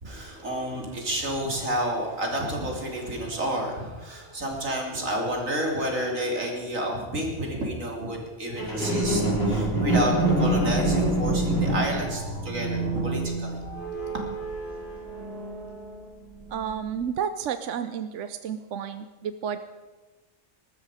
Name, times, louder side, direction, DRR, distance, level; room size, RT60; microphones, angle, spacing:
voice 1, 0.0-13.6 14.0-14.2, right 1 dB, 85° right, 0 dB, 3.5 m, -30 dB
sound 1, 8.6-16.0 16.6-16.7, right 1 dB, 50° left, 4.0 m, -26 dB
voice 2, 16.5-19.6, right 8 dB, 70° right, 10 dB, 1.0 m, -31 dB
20.5 x 13.0 x 4.9 m, 1.3 s
omnidirectional pair, 1.3 m